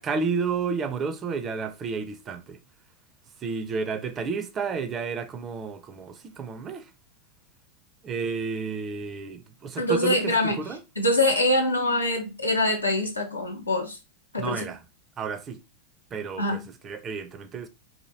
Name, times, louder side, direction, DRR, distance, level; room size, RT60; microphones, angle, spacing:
voice 1, 0.0-2.6 3.4-6.9 8.0-10.3 10.6-10.8 14.4-14.8 15.2-15.6 16.1-17.7, right 5 dB, 25° right, 0.4 m, -31 dB
voice 2, 9.8-10.6 11.0-14.0 14.3-14.6 16.4-16.6, left 1 dB, 80° left, 0.7 m, -24 dB
2.8 x 2.6 x 2.7 m
figure-of-eight pair, 90°, 0 cm